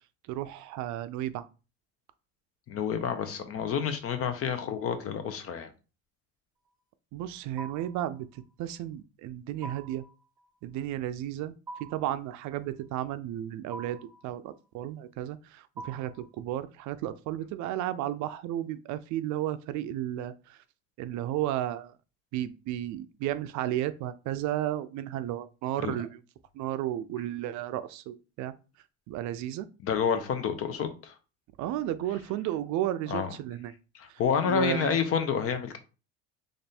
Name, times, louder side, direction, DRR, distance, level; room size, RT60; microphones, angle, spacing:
voice 1, 0.3-1.5 7.1-10.0 10.6-20.6 21.0-21.9 22.3-26.2 26.5-28.5 29.1-29.7 31.6-33.7 34.1-35.0, right 13 dB, 65° right, 0.5 m, -33 dB
voice 2, 2.7-5.7 25.8-25.9 29.8-31.1 33.1-33.3 33.9-35.8, left 7 dB, 45° left, 0.8 m, -29 dB
sound 1, 7.6-8.1 9.6-10.1 11.7-12.1 13.7-14.2 15.8-16.2, right 3 dB, 10° right, 0.7 m, -43 dB
3.3 x 2.6 x 4.2 m
cardioid pair, 120°, 31 cm